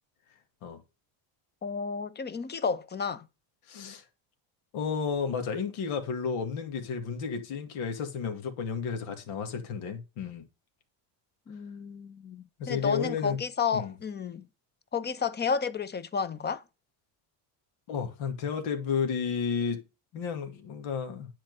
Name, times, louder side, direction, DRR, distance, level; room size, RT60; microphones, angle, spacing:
voice 1, 1.6-3.3 11.5-14.5 14.9-16.6, left 6 dB, 20° left, 0.7 m, -31 dB
voice 2, 3.7-4.0 4.7-10.4 12.6-13.4 13.7-13.9 17.9-19.8 20.1-21.3, left 6 dB, 75° left, 2.4 m, -32 dB
10.5 x 4.5 x 6.7 m
cardioid pair, 130°, 50 cm